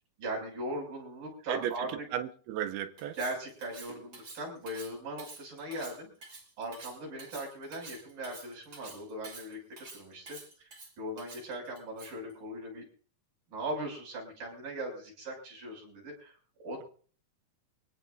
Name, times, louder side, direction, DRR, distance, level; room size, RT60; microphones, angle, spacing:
voice 1, 0.2-2.1 3.2-6.1 6.6-9.6 9.9-10.7 11.0-12.9 13.5-16.4 16.6-16.8, right 1 dB, 65° right, 8.4 m, -39 dB
voice 2, 1.5-3.2, right 10 dB, 85° right, 2.8 m, -35 dB
Cutlery silverware, 3.0-12.3, right 3 dB, 30° right, 3.2 m, -49 dB
24.5 x 17.5 x 2.7 m
omnidirectional pair, 4.4 m